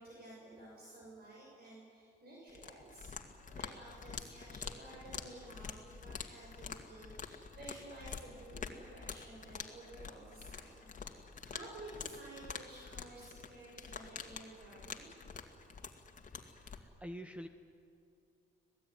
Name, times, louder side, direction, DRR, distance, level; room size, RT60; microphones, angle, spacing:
voice 1, 0.0-15.1 16.4-16.6, right 2 dB, 50° right, -4 dB, 7.1 m, -53 dB
sound 1, 2.5-16.8, left 5 dB, 40° left, 2.2 m, -47 dB
voice 2, 16.4-17.5, equal, 5° right, 8 dB, 1.0 m, -47 dB
25.5 x 18.0 x 9.8 m, 2.5 s
cardioid pair, 90°, 20 cm